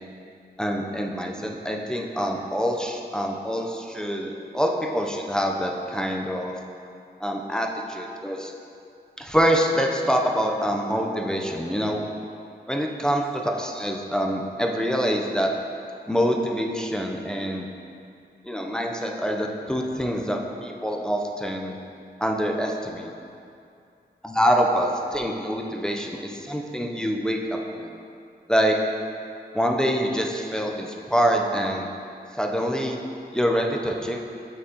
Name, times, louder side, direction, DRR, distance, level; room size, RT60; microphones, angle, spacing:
voice 1, 0.6-6.5 7.2-8.5 9.2-12.0 12.7-15.5 16.1-17.7 18.4-21.8 22.2-23.1 24.2-27.9 28.5-28.8 29.5-31.9 32.3-33.0 33.3-34.2, equal, 5° left, 1 dB, 0.5 m, -25 dB
6.2 x 5.6 x 2.8 m, 2.5 s
wide cardioid pair, 105°, 17 cm